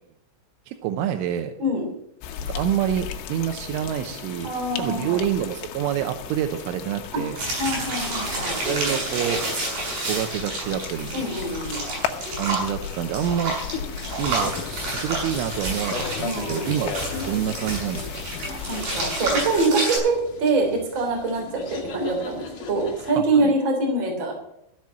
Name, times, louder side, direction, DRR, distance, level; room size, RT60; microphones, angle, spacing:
voice 1, 0.7-1.5 2.4-4.5 4.8-7.4 8.6-9.4 10.1-11.3 12.4-13.6 14.2-14.5 15.0-16.9 17.3-18.2 23.1-23.5, right 10 dB, 90° right, 6 dB, 3.3 m, -27 dB
sound 1, 2.2-19.7, left 8 dB, 90° left, 3.7 m, -36 dB
voice 2, 4.4-5.2 7.6-8.6 11.1-11.8 16.2-16.7 18.7-24.3, right 2 dB, 25° right, 1 dB, 3.7 m, -24 dB
sound 2, 7.4-20.0, right 2 dB, 45° right, 8.1 m, -30 dB
sound 3, 13.6-23.1, left 5 dB, 50° left, 3.0 m, -37 dB
15.0 x 7.9 x 7.3 m, 0.77 s
omnidirectional pair, 5.5 m